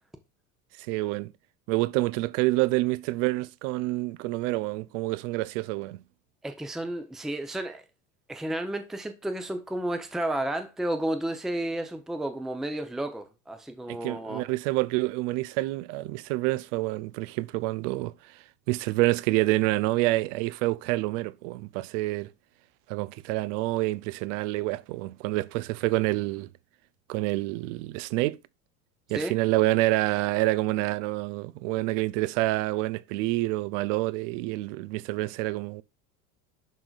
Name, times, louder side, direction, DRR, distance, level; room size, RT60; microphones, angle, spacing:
voice 1, 0.8-1.3 1.7-6.0 13.9-22.3 22.9-26.5 27.1-28.4 29.1-35.8, right 19 dB, 60° right, 0.5 m, -27 dB
voice 2, 6.4-7.8 8.3-14.4 29.1-29.3, right 1 dB, ahead, 0.7 m, -32 dB
11.0 x 3.7 x 2.4 m
hypercardioid pair, 90°, 42 cm